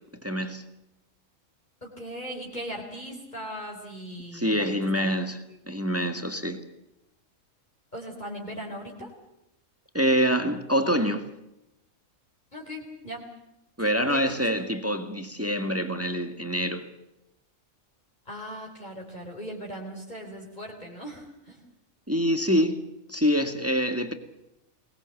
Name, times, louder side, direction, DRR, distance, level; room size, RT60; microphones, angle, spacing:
voice 1, 0.2-0.6 4.3-6.6 9.9-11.2 13.8-16.9 22.1-22.8 23.1-24.1, equal, 10° right, 1.7 m, -26 dB
voice 2, 1.8-5.1 5.5-5.6 7.9-9.1 12.5-13.3 13.8-14.6 18.3-21.6, equal, 30° left, 4.2 m, -39 dB
24.0 x 19.5 x 7.8 m
omnidirectional pair, 1.4 m